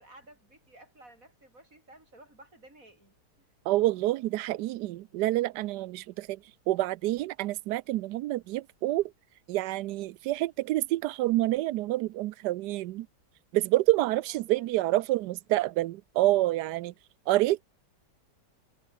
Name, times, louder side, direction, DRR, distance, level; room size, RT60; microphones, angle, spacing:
voice 1, 0.0-3.5 14.1-14.9, right 1 dB, 50° right, 7.8 m, -55 dB
voice 2, 3.7-6.4 6.7-9.0 9.5-13.1 13.5-16.9 17.3-17.7, right 16 dB, 75° right, 1.1 m, -27 dB
omnidirectional pair, 1.9 m